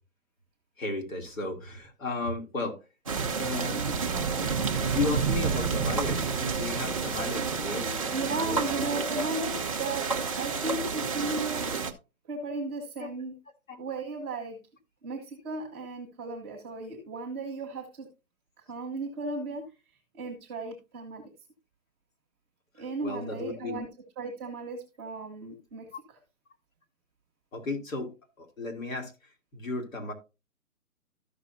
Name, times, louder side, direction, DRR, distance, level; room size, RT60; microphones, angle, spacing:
voice 1, 0.8-2.8 3.4-3.8 4.3-9.1 13.0-13.1 13.7-13.8 23.0-23.8 25.9-26.0 27.5-28.1 28.4-29.1 29.5-30.1, left 3 dB, 65° left, 2.9 m, -34 dB
sound 1, 3.1-11.9, right 5 dB, 25° right, 0.6 m, -30 dB
voice 2, 3.5-4.4 8.1-10.1 10.3-11.7 12.3-13.4 13.8-14.6 15.0-18.1 18.6-19.7 20.1-21.3 22.8-23.9 24.2-26.2, right 3 dB, 10° right, 1.0 m, -35 dB
13.5 x 6.0 x 2.7 m
hypercardioid pair, 165°, 43 cm